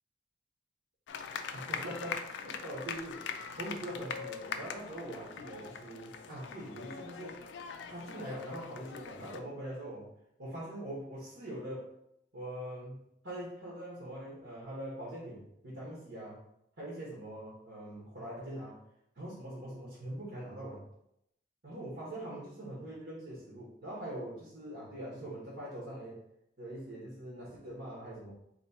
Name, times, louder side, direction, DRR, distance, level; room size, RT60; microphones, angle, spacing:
sound 1, 1.1-9.4, left 6 dB, 85° left, 0.4 m, -42 dB
voice 1, 1.5-3.2 3.5-7.4 7.9-10.1 10.4-11.9 12.3-16.4 16.8-18.8 19.1-20.8 21.6-26.2 26.6-28.3, right 1 dB, 90° right, -7 dB, 1.4 m, -43 dB
3.1 x 3.0 x 4.2 m, 0.78 s
head